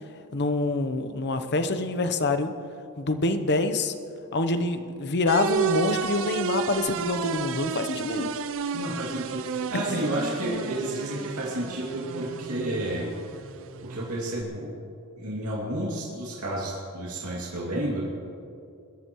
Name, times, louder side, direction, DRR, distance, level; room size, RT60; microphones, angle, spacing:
voice 1, 0.3-2.5 3.0-3.9 4.3-8.3 9.7-10.0, left 2 dB, 50° left, 9 dB, 0.8 m, -26 dB
sound 1, 5.3-14.4, right 5 dB, 60° right, 0.5 m, -32 dB
voice 2, 8.7-13.1 13.8-14.7 15.2-18.1, right 1 dB, 80° right, -5 dB, 2.5 m, -31 dB
21.5 x 13.0 x 3.1 m, 2.5 s
head